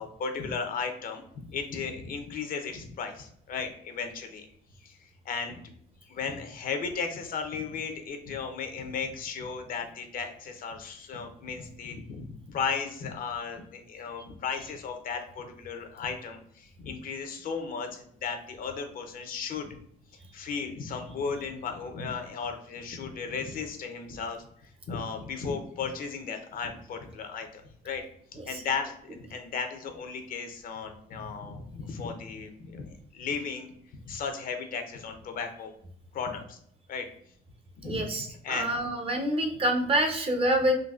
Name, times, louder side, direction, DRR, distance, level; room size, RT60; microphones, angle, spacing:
voice 1, 0.0-4.5 4.8-5.0 5.2-5.6 6.1-19.8 20.3-28.0 28.3-35.7 36.1-36.6 36.9-37.1 37.8-38.8, left 5 dB, 55° left, 6 dB, 0.7 m, -35 dB
voice 2, 37.8-40.7, right 1 dB, 35° right, 3 dB, 0.8 m, -27 dB
3.9 x 2.7 x 2.4 m, 0.68 s
cardioid pair, 110°, 17 cm